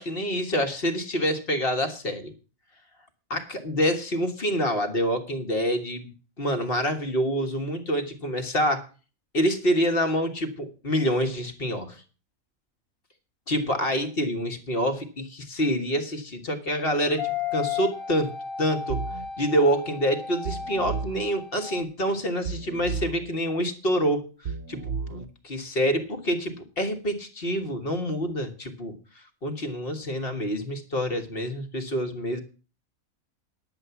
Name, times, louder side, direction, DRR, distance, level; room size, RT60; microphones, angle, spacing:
voice 1, 0.0-2.3 3.3-8.9 9.3-12.0 13.5-19.0 19.4-32.4, equal, 40° left, 6 dB, 1.7 m, -27 dB
sound 1, 16.7-21.8, left 7 dB, 25° left, 1.5 m, -34 dB
sound 2, 18.9-19.3 20.5-21.3 22.5-23.3 24.5-25.3, right 5 dB, 65° right, 1.2 m, -33 dB
10.5 x 7.9 x 7.0 m, 0.37 s
omnidirectional pair, 1.5 m